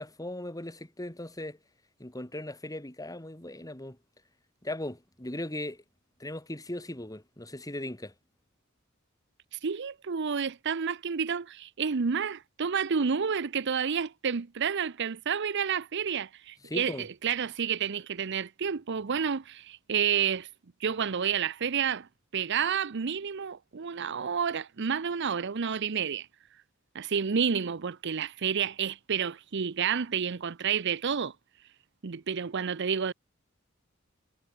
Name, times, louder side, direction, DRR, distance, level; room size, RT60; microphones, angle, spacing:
voice 1, 0.0-1.6 2.0-4.0 4.6-5.8 6.2-8.1 16.6-17.1, left 1 dB, 15° left, 2.6 m, -38 dB
voice 2, 9.5-20.5 20.8-22.1 22.3-26.3 26.9-31.3 32.0-33.1, right 7 dB, 55° right, 0.6 m, -30 dB
head